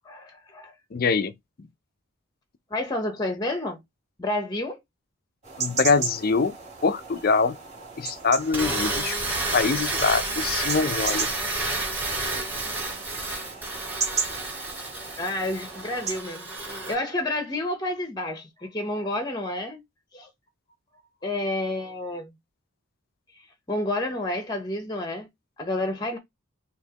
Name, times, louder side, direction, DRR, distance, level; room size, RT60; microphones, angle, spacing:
voice 1, 0.0-0.7 2.7-3.8 4.2-4.8 15.2-19.8 20.1-20.3 21.2-22.3 23.7-25.3 25.6-26.2, left 1 dB, 20° left, 0.8 m, -30 dB
voice 2, 0.9-1.3 5.6-6.5 6.8-7.6 8.0-9.2 9.5-11.3 14.3-14.4, left 4 dB, 45° left, 0.4 m, -24 dB
sound 1, 5.4-16.2, right 5 dB, 30° right, 3.3 m, -35 dB
sound 2, 8.4-16.9, right 2 dB, 10° right, 3.8 m, -30 dB
6.1 x 2.9 x 2.9 m
head